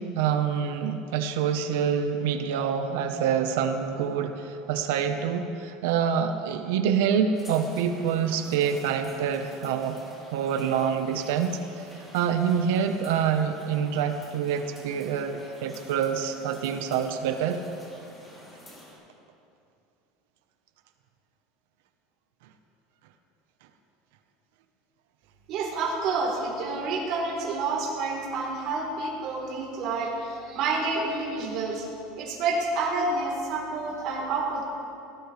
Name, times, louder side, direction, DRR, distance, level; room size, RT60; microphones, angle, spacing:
voice 1, 0.0-10.0 10.3-11.6 12.1-17.6, right 7 dB, 80° right, 6 dB, 1.1 m, -26 dB
sound 1, 7.3-18.9, left 1 dB, 15° left, 3.2 m, -49 dB
voice 2, 25.5-31.9 32.2-34.6, right 3 dB, 45° right, -2 dB, 3.8 m, -29 dB
21.5 x 18.0 x 3.4 m, 2.6 s
cardioid pair, 165°, 0 cm